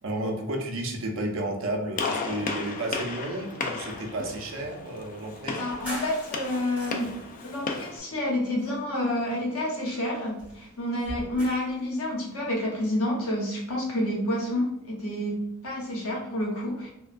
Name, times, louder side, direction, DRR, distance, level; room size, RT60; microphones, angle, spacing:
voice 1, 0.0-5.6, right 1 dB, 65° right, 2 dB, 0.5 m, -32 dB
Gunshot gunfire, 2.0-8.0, left 4 dB, 40° left, 0.3 m, -34 dB
sound 1, 5.5-7.4 8.1-9.2 9.6-11.8, equal, 5° right, 1.4 m, -42 dB
voice 2, 5.6-7.1 7.4-15.4 15.6-16.9, left 1 dB, 80° left, -2 dB, 0.9 m, -29 dB
3.0 x 2.2 x 2.4 m, 0.81 s
head